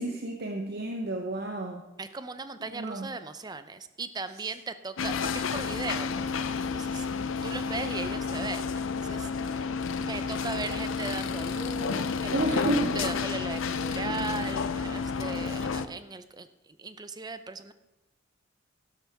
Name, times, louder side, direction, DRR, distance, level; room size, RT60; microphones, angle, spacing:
voice 1, 0.0-1.8 2.7-3.1 12.3-13.0, right 2 dB, 55° right, 3 dB, 0.9 m, -30 dB
voice 2, 2.0-7.1 7.4-9.7 10.0-12.6 12.9-17.7, right 3 dB, 20° right, 11 dB, 0.6 m, -38 dB
sound 1, 5.0-15.8, left 5 dB, 85° left, 0.6 m, -31 dB
12.5 x 12.0 x 3.5 m, 0.99 s
head